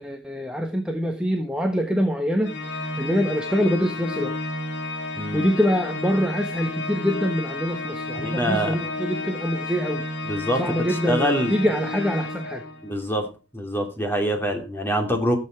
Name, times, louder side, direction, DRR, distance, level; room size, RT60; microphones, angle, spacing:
voice 1, 0.0-4.3 5.3-10.0 10.6-12.6, equal, 5° right, 3 dB, 1.3 m, -25 dB
Organ, 2.4-13.0, left 2 dB, 70° left, 3.0 m, -31 dB
voice 2, 5.2-5.5 8.2-8.8 10.2-11.5 12.8-13.3 13.5-15.4, equal, 10° left, 3 dB, 2.9 m, -25 dB
15.5 x 7.9 x 4.5 m, 0.31 s
head